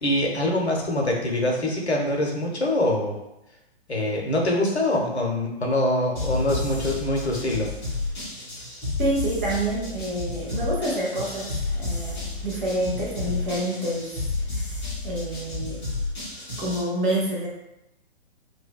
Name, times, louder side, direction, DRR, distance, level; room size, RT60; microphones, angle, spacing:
voice 1, 0.0-3.2 3.9-7.7, left 1 dB, 85° left, -1 dB, 0.7 m, -24 dB
sound 1, 6.2-16.8, left 2 dB, 15° left, 0.5 m, -31 dB
voice 2, 9.0-14.2 14.5-14.7 15.0-15.8 16.6-17.5, right 1 dB, 50° right, -4 dB, 0.8 m, -28 dB
2.7 x 2.2 x 2.2 m, 0.85 s
figure-of-eight pair, 120°, 32 cm